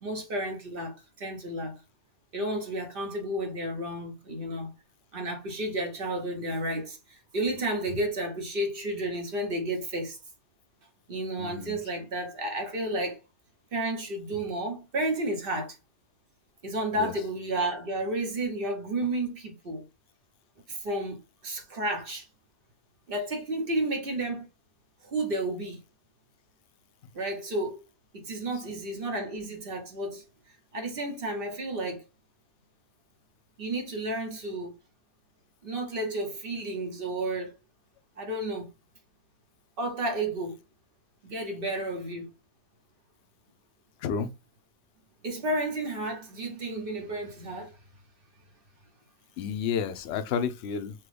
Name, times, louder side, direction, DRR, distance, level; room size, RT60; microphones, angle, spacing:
voice 1, 0.0-1.8 2.3-4.7 5.1-10.2 11.1-13.2 13.7-15.8 16.6-19.8 20.7-22.3 23.1-24.5 25.0-25.8 27.1-27.8 28.1-30.2 30.7-32.0 33.6-34.7 35.6-37.5 38.2-38.7 39.8-40.6 41.2-42.3 45.2-47.8, right 1 dB, 50° right, 1.1 m, -32 dB
voice 2, 11.4-11.8 17.0-17.1 44.0-44.3 49.4-50.9, left 7 dB, 65° left, 0.8 m, -31 dB
5.9 x 2.2 x 3.3 m
omnidirectional pair, 1.3 m